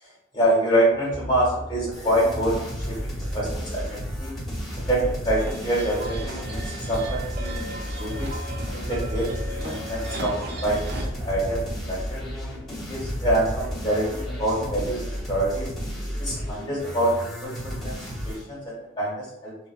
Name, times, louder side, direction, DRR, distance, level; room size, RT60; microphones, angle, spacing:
voice 1, 0.0-4.4 4.7-7.6 8.0-8.3 8.7-12.2 12.7-15.7 16.2-18.0 18.2-19.5, right 1 dB, 25° left, -5 dB, 1.0 m, -26 dB
sound 1, 0.9-16.5 17.3-17.4, equal, 85° right, 1.1 m, -37 dB
sound 2, 1.9-18.4, equal, ahead, 1.0 m, -34 dB
sound 3, 5.4-11.0, right 1 dB, 55° right, 0.5 m, -37 dB
2.8 x 2.4 x 2.4 m, 0.84 s
head